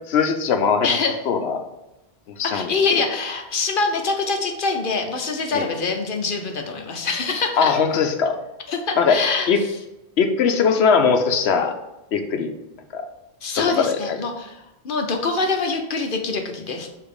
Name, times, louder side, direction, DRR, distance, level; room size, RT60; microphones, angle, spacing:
voice 1, 0.1-1.0 1.3-1.6 2.4-2.7 5.5-5.7 7.6-8.4 9.0-9.2 9.5-9.6 10.2-11.7 12.1-12.5 12.9-13.1 13.8-14.2, left 6 dB, 90° left, 6 dB, 1.0 m, -20 dB
voice 2, 0.8-1.2 2.4-7.7 8.7-9.7 13.4-16.9, left 4 dB, 55° left, 4 dB, 1.0 m, -24 dB
7.1 x 2.9 x 4.8 m, 0.95 s
omnidirectional pair, 1.1 m